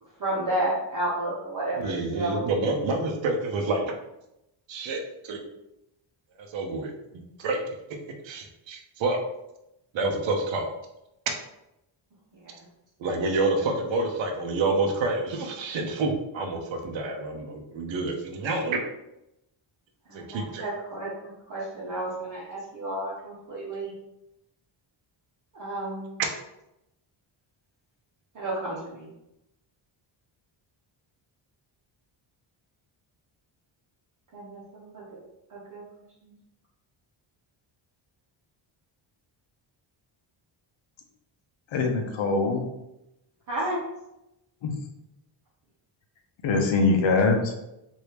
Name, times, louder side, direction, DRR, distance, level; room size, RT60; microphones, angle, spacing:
voice 1, 0.2-2.5 12.4-12.5 20.1-21.1 21.5-23.9 25.5-26.1 28.3-29.1 34.3-35.0 35.5-35.8 36.2-36.3 43.5-43.8, right 1 dB, 40° right, -8 dB, 0.9 m, -31 dB
voice 2, 1.7-3.9 4.7-5.4 6.5-7.6 8.2-9.2 9.9-10.7 13.0-18.8 20.1-20.6, right 3 dB, 65° right, 3 dB, 0.7 m, -28 dB
voice 3, 41.7-42.7 44.6-44.7 46.4-47.5, left 3 dB, 70° left, 4 dB, 0.7 m, -23 dB
3.3 x 2.7 x 3.0 m, 0.88 s
wide cardioid pair, 155°, 48 cm